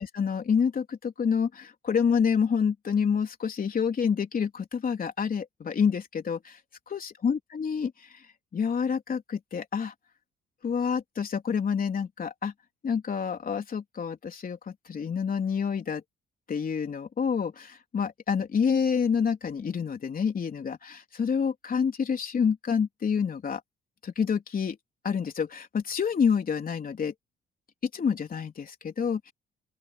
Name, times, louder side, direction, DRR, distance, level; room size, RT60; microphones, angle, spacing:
voice 1, 0.0-6.6 6.9-7.9 8.5-9.9 10.6-12.5 12.8-16.0 16.5-23.6 24.0-24.8 25.0-27.1 27.9-29.3, left 6 dB, 45° left, 3.7 m, -28 dB
open air
cardioid pair, 90°, 20 cm